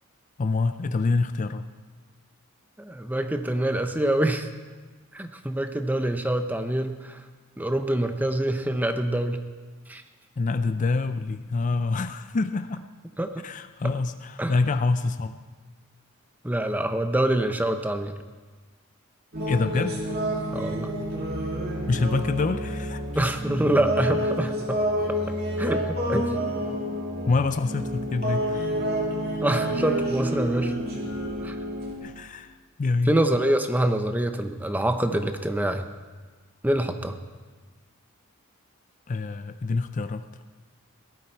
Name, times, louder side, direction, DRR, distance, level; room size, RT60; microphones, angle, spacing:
voice 1, 0.4-1.7 10.4-12.8 13.4-15.4 19.5-20.1 21.9-23.0 27.3-28.7 32.0-33.2 39.1-40.2, left 3 dB, 35° left, 11 dB, 0.4 m, -26 dB
voice 2, 2.8-4.5 5.1-7.2 7.6-9.4 9.9-10.0 13.2-13.3 14.4-14.5 16.4-18.1 20.5-20.9 23.1-24.8 25.1-25.2 25.6-26.3 29.4-30.7 31.4-31.5 33.1-35.8 36.6-37.2, right 1 dB, 10° right, 8 dB, 0.6 m, -25 dB
sound 1, 19.3-32.0, equal, 45° right, 2.5 m, -29 dB
18.0 x 12.5 x 4.5 m, 1.4 s
head